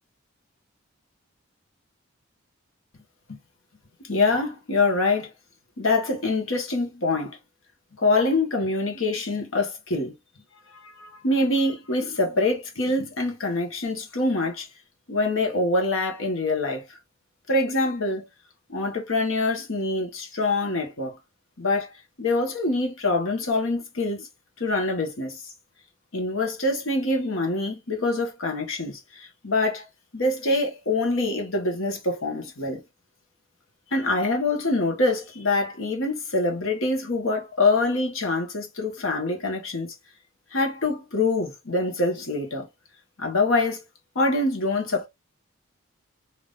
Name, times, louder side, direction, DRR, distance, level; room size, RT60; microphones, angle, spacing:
voice 1, 4.0-5.3 5.8-7.4 8.0-10.1 10.7-14.7 15.1-16.8 17.5-18.2 18.7-21.2 21.6-21.9 22.2-24.3 24.6-25.5 26.1-29.9 30.1-32.8 33.9-39.9 40.5-42.7 43.2-43.8 44.1-45.1, left 2 dB, 70° left, 1.3 m, -25 dB
3.5 x 2.8 x 2.5 m
head